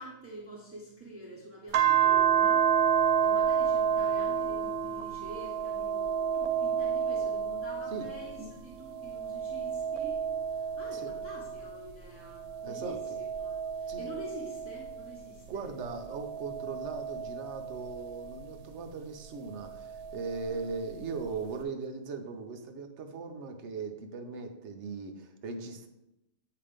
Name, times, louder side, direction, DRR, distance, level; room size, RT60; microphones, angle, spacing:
voice 1, 0.0-2.7 3.2-15.7 20.5-20.6, right 1 dB, 10° right, -5 dB, 1.2 m, -46 dB
sound 1, 1.7-8.5 8.9-11.8 12.4-15.2 15.9-18.4 19.7-20.8, right 8 dB, 90° right, 1.1 m, -30 dB
voice 2, 12.6-13.0 13.9-14.1 15.5-25.9, right 4 dB, 60° right, 5 dB, 1.0 m, -39 dB
8.6 x 2.9 x 5.0 m, 0.88 s
omnidirectional pair, 1.5 m